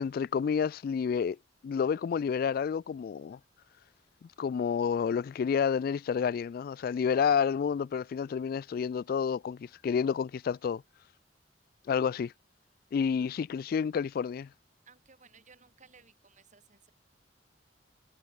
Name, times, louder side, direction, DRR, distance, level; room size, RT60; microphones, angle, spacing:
voice 1, 0.0-1.4 1.6-3.4 4.4-10.8 11.9-12.3 12.9-14.5, left 6 dB, 55° left, 0.3 m, -29 dB
voice 2, 14.9-16.9, right 5 dB, 45° right, 4.3 m, -59 dB
head